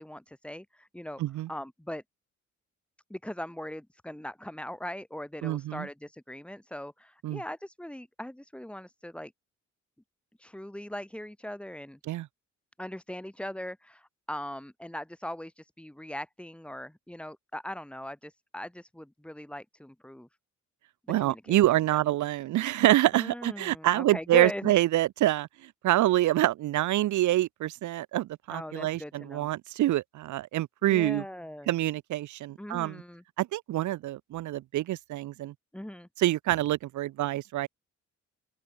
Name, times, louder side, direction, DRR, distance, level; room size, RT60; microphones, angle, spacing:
voice 1, 0.0-1.2 1.5-2.0 3.1-9.3 10.4-12.0 12.8-20.3 21.2-21.6 21.9-22.0 23.1-24.7 28.5-29.5 30.8-31.7 32.6-33.2 35.7-36.1, left 1 dB, 5° left, 2.2 m, -39 dB
voice 2, 1.2-1.5 5.4-5.9 7.2-7.4 12.1-12.3 21.1-31.2 31.7-33.0 33.4-35.5 36.2-37.7, right 15 dB, 75° right, 1.0 m, -26 dB
open air
cardioid pair, 90°, 30 cm